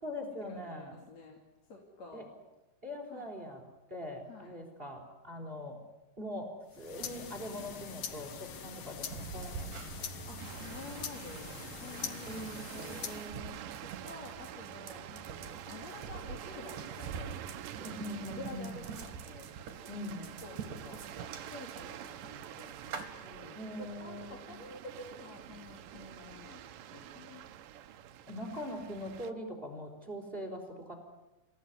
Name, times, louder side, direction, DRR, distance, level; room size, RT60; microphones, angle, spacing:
voice 1, 0.0-1.0 2.1-2.3 2.8-3.6 3.9-5.8 6.2-10.1 12.3-13.7 17.8-18.8 19.9-20.2 23.5-24.5 28.3-30.9, left 1 dB, 15° right, 4 dB, 4.0 m, -42 dB
voice 2, 0.6-1.4 1.7-2.3 3.1-3.3 4.3-4.5 10.3-12.4 12.7-13.1 13.8-17.3 17.8-17.9 18.3-19.5 20.2-21.0 21.5-23.6 24.0-26.6 26.9-27.4, left 3 dB, 40° left, 1 dB, 3.5 m, -50 dB
sound 1, 6.7-13.4, left 7 dB, 70° left, 1.4 m, -43 dB
sound 2, 9.1-23.0, right 6 dB, 50° right, 3.7 m, -46 dB
sound 3, 10.4-29.3, right 11 dB, 70° right, 2.1 m, -47 dB
27.5 x 17.0 x 9.8 m, 1.0 s
omnidirectional pair, 5.1 m